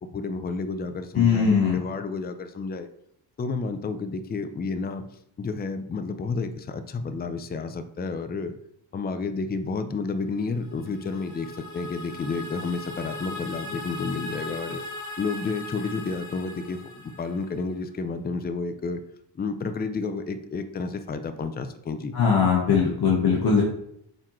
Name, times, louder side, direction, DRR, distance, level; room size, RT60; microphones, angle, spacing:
voice 1, 0.0-2.9 3.4-5.0 5.4-8.5 8.9-14.8 15.2-19.0 19.3-22.1, left 4 dB, 25° left, 9 dB, 0.5 m, -31 dB
voice 2, 1.2-1.8 22.1-23.6, left 6 dB, 60° left, -3 dB, 1.3 m, -20 dB
sound 1, 10.5-17.7, left 2 dB, 40° left, 1.3 m, -39 dB
8.9 x 3.8 x 3.1 m, 0.72 s
cardioid pair, 115°, 43 cm